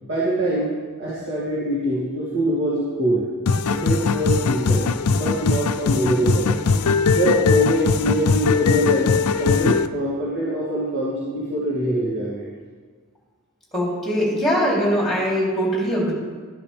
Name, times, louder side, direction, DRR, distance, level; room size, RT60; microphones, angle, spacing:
voice 1, 0.0-3.3 3.7-6.5 7.0-9.1 9.4-12.5, right 1 dB, 50° right, -7 dB, 2.6 m, -24 dB
sound 1, 3.5-9.9, left 5 dB, 85° left, 0.5 m, -20 dB
voice 2, 13.7-16.1, equal, ahead, -5 dB, 3.1 m, -21 dB
12.5 x 11.5 x 3.4 m, 1.5 s
head